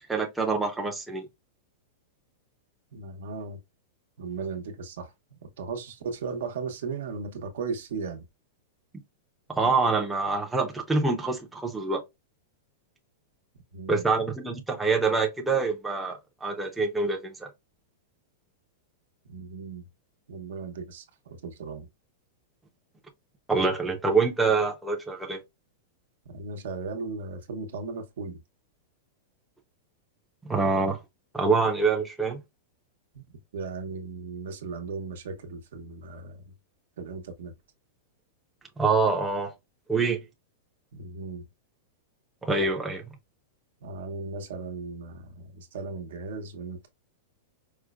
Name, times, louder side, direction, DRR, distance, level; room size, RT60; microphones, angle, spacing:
voice 1, 0.1-1.3 9.5-12.0 13.9-17.5 23.5-25.4 30.4-31.0 31.3-32.4 38.8-39.5 39.9-40.2 42.4-43.0, right 4 dB, 5° right, 0.5 m, -25 dB
voice 2, 2.9-3.6 4.2-8.3 13.7-14.0 19.3-19.9 20.3-21.9 26.3-28.4 33.1-33.2 33.5-36.5 37.0-37.5 40.9-41.5 42.6-42.7 43.8-46.9, right 4 dB, 75° right, 0.8 m, -36 dB
4.8 x 2.1 x 2.3 m
supercardioid pair, 165°, 0 cm